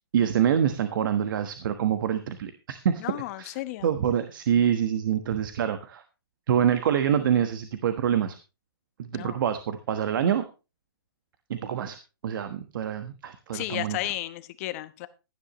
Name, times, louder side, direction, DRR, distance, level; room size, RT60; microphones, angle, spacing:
voice 1, 0.1-3.0 3.4-3.5 3.8-6.0 6.5-8.4 9.0-10.4 11.5-12.0 12.2-14.0, right 9 dB, 55° right, 9 dB, 1.3 m, -26 dB
voice 2, 3.0-3.9 9.1-9.4 13.5-15.1, left 16 dB, 35° left, 13 dB, 1.0 m, -33 dB
16.0 x 10.5 x 3.0 m, 0.30 s
hypercardioid pair, 140°, 13 cm